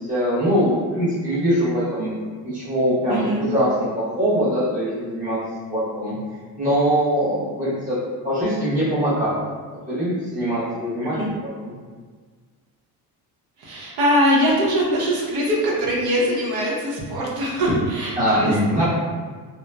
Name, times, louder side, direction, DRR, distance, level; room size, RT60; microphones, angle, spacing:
voice 1, 0.1-2.1 2.4-5.4 5.7-6.2 6.6-8.0 8.2-9.4 9.9-11.2 11.6-11.7 18.2-18.9, equal, 20° right, -11 dB, 1.1 m, -22 dB
voice 2, 3.1-3.4 11.0-11.3 13.6-18.6, equal, 80° right, -4 dB, 0.8 m, -22 dB
2.8 x 2.1 x 2.3 m, 1.5 s
cardioid pair, 165°, 38 cm